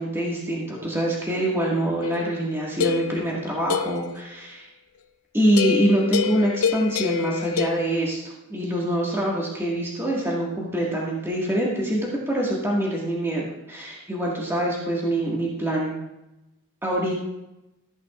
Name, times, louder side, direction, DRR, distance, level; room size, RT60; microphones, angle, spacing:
voice 1, 0.0-4.7 5.3-8.2 8.5-16.0 16.8-17.3, right 1 dB, 10° right, -4 dB, 1.8 m, -25 dB
sound 1, 2.0-4.1 5.6-7.7, left 8 dB, 85° left, 0.7 m, -27 dB
14.5 x 9.8 x 2.5 m, 0.94 s
head